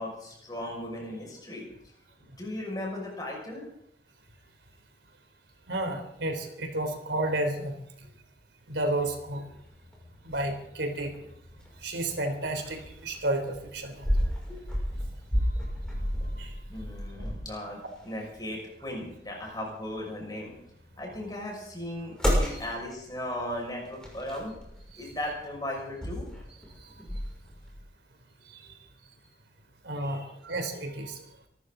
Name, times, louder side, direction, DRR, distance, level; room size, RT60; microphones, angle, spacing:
voice 1, 0.0-1.6 2.4-3.6 14.5-14.8 16.7-20.5 21.0-24.5 25.0-26.3 30.0-30.2, left 1 dB, 20° left, -1 dB, 6.0 m, -37 dB
voice 2, 5.7-7.8 8.7-9.5 10.2-11.3 11.8-14.1 16.4-16.5 22.6-22.7 24.9-25.0 28.5-28.8 29.8-31.2, right 1 dB, 85° right, 5 dB, 3.5 m, -31 dB
sound 1, 8.7-27.8, equal, 5° left, 6.2 m, -34 dB
25.5 x 13.5 x 3.9 m, 0.75 s
head